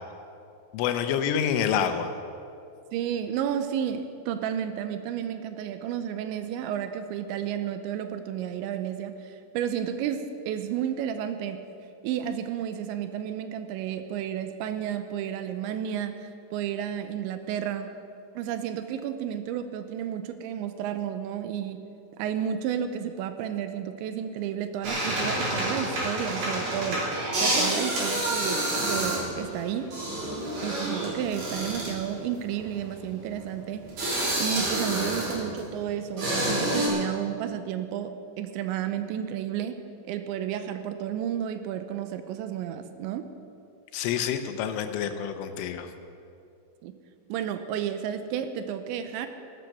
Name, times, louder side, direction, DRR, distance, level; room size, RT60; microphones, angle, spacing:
voice 1, 0.7-2.1 43.9-45.9, left 8 dB, 90° left, 8 dB, 3.3 m, -27 dB
voice 2, 2.9-11.6 12.0-17.9 18.4-21.8 22.2-27.0 27.4-29.9 30.6-33.9 34.4-43.3 46.8-47.0 47.3-49.3, right 9 dB, 85° right, 9 dB, 2.8 m, -32 dB
sound 1, 24.8-35.7 36.2-36.9, right 1 dB, 45° right, 5.0 m, -28 dB
15.0 x 12.0 x 6.7 m, 2.5 s
omnidirectional pair, 5.6 m